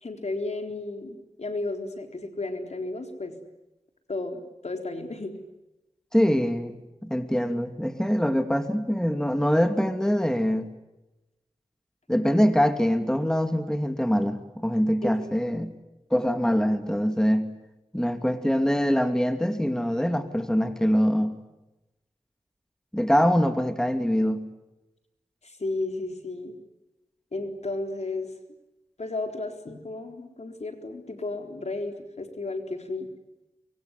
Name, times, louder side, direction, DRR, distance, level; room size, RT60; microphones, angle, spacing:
voice 1, 0.0-3.4 4.1-5.4 15.0-15.2 25.4-26.5 27.3-28.3 29.0-33.1, left 2 dB, 70° left, 5 dB, 4.1 m, -33 dB
voice 2, 6.1-6.8 7.0-10.7 12.1-15.7 16.1-17.5 17.9-21.4 22.9-24.5, equal, 5° left, 8 dB, 2.6 m, -24 dB
24.5 x 23.5 x 9.6 m, 0.97 s
cardioid pair, 45°, 12 cm